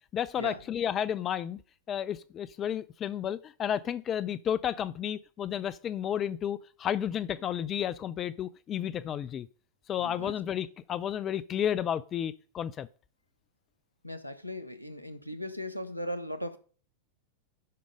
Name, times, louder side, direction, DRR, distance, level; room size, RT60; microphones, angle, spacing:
voice 1, 0.0-1.6 1.9-9.5 9.9-12.9, left 9 dB, 30° left, 0.4 m, -32 dB
voice 2, 10.0-10.3 14.0-16.6, equal, 90° left, 1.0 m, -38 dB
11.0 x 5.2 x 5.0 m
figure-of-eight pair, 90°, 0 cm